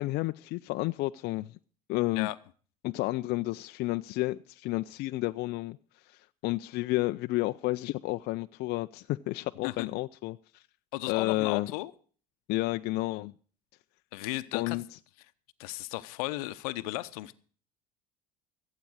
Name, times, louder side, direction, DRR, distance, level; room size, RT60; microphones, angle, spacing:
voice 1, 0.0-1.5 1.9-2.3 2.8-5.8 6.1-10.6 11.1-11.7 12.5-13.3 14.5-14.8, left 19 dB, 65° left, 0.5 m, -31 dB
voice 2, 10.9-11.9 14.1-14.8 15.6-17.3, left 19 dB, 85° left, 0.9 m, -35 dB
15.5 x 8.5 x 6.3 m
supercardioid pair, 85°, 18 cm